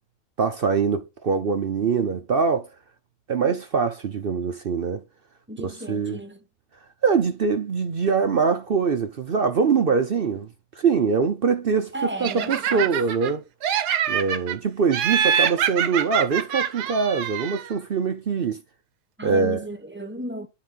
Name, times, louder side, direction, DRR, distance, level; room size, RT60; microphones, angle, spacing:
voice 1, 0.4-2.7 3.3-5.0 5.6-6.2 7.0-10.5 10.8-11.9 12.2-13.4 14.1-18.6 19.2-19.6, right 5 dB, 55° right, 0.6 m, -23 dB
voice 2, 5.5-6.4 11.9-12.9 19.2-20.5, right 1 dB, 10° right, 0.9 m, -34 dB
Laughter, 12.2-13.3 13.6-14.6 14.9-17.7, right 8 dB, 85° right, 1.4 m, -25 dB
11.5 x 4.2 x 3.8 m
omnidirectional pair, 1.7 m